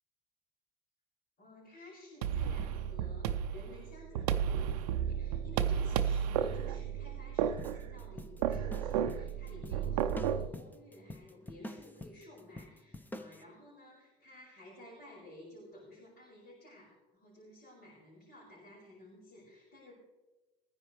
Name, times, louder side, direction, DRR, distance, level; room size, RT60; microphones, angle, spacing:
voice 1, 1.4-19.9, left 1 dB, 60° left, -6 dB, 5.3 m, -53 dB
sound 1, 2.2-10.5, right 9 dB, 85° right, 0.6 m, -33 dB
sound 2, 7.6-13.4, left 1 dB, 10° left, 0.8 m, -47 dB
20.5 x 10.0 x 3.2 m, 1.1 s
hypercardioid pair, 75°, 19 cm